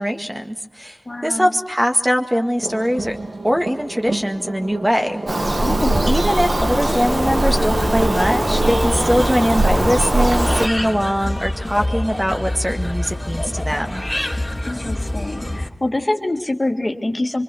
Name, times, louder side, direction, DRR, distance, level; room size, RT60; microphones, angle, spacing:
voice 1, 0.0-1.0 1.2-3.2 3.4-5.2 6.1-14.0, equal, 15° right, 4 dB, 1.9 m, -21 dB
voice 2, 1.1-1.5 5.6-6.2 14.6-17.4, left 2 dB, 40° left, 4 dB, 2.1 m, -25 dB
sound 1, 2.6-8.8, right 2 dB, 80° right, 2.8 m, -32 dB
Bird vocalization bird call bird song, 5.3-10.7, right 1 dB, 55° right, 1.9 m, -20 dB
sound 2, 6.6-15.7, left 1 dB, 15° left, 3.2 m, -26 dB
25.0 x 24.5 x 6.3 m, 0.83 s
wide cardioid pair, 60°, 0 cm